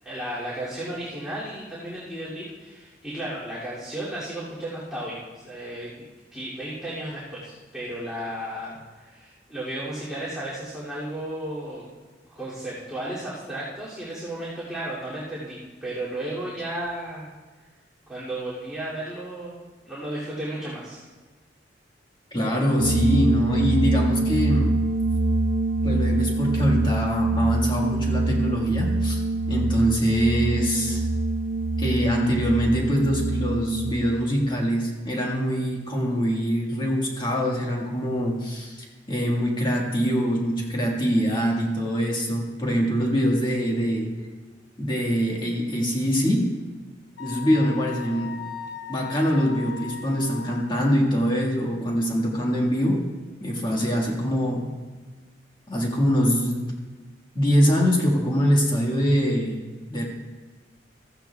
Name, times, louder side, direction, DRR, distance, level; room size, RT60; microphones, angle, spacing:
voice 1, 0.0-5.9 6.3-11.8 12.3-17.3 18.1-19.6 19.8-21.0, right 1 dB, 5° right, -10 dB, 2.6 m, -34 dB
voice 2, 22.3-24.8 25.8-29.2 29.5-31.0 31.8-44.1 44.8-46.5 47.2-48.4 48.9-53.0 53.4-54.7 55.7-56.7 57.3-59.6 59.9-60.0, equal, 25° left, -2 dB, 1.6 m, -24 dB
sound 1, 22.8-33.9, right 2 dB, 90° right, 0.6 m, -24 dB
Wind instrument woodwind instrument, 47.2-50.7, left 9 dB, 70° left, 0.9 m, -38 dB
16.0 x 14.5 x 2.3 m, 1.3 s
head